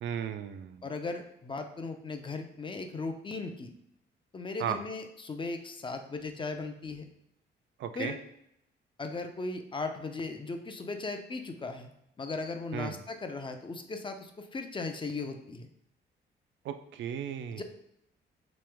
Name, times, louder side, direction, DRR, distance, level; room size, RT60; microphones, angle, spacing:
voice 1, 0.0-0.8 4.6-4.8 7.8-8.1 12.7-13.0 16.6-17.6, right 9 dB, 70° right, 9 dB, 0.4 m, -35 dB
voice 2, 0.8-3.7 4.3-7.1 8.0-8.2 9.0-11.9 12.2-15.7 17.5-17.6, left 3 dB, 25° left, 6 dB, 0.5 m, -37 dB
3.1 x 2.9 x 3.4 m, 0.77 s
cardioid pair, 90°, 20 cm